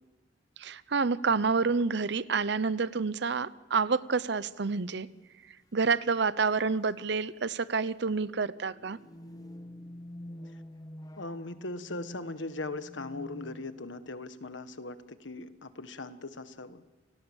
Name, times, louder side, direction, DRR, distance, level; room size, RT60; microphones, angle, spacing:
voice 1, 0.6-5.1 5.7-9.0, right 4 dB, 65° right, 17 dB, 0.8 m, -28 dB
sound 1, 4.9-5.0 6.0-6.3 6.5-6.6 7.1-7.3 8.3-14.0, left 1 dB, 20° left, 0.8 m, -47 dB
voice 2, 11.2-16.8, left 2 dB, 85° left, 11 dB, 1.4 m, -39 dB
29.0 x 18.5 x 7.4 m, 1.2 s
head